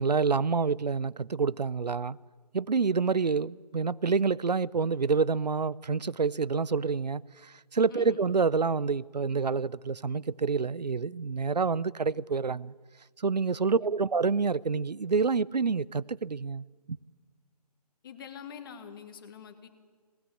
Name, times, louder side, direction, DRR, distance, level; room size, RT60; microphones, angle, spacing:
voice 1, 0.0-2.2 2.5-12.7 13.2-17.0, right 5 dB, 85° right, 0.6 m, -28 dB
voice 2, 7.9-8.2 13.7-14.1 18.0-19.7, left 7 dB, 35° left, 2.1 m, -45 dB
20.0 x 18.5 x 8.6 m
figure-of-eight pair, 150°, 21 cm